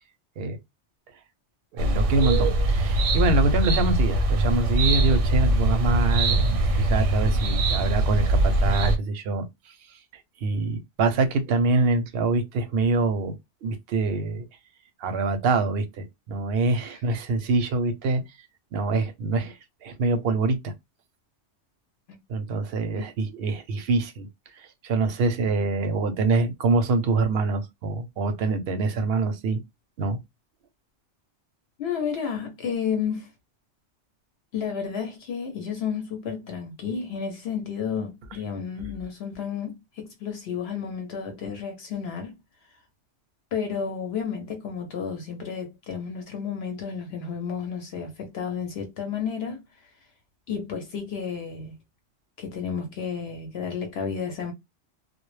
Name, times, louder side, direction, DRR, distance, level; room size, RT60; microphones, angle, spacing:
voice 1, 1.7-9.4 10.4-13.4 13.6-14.5 15.0-18.2 18.7-20.7 22.3-24.3 24.6-29.6 30.0-30.2, right 3 dB, 65° right, 0.7 m, -25 dB
sound 1, 1.8-9.0, right 1 dB, 90° right, 1.0 m, -22 dB
voice 2, 31.8-33.3 34.5-42.4 43.5-49.6 50.5-51.7 52.4-54.5, left 6 dB, 65° left, 0.8 m, -31 dB
2.1 x 2.1 x 3.0 m
omnidirectional pair, 1.2 m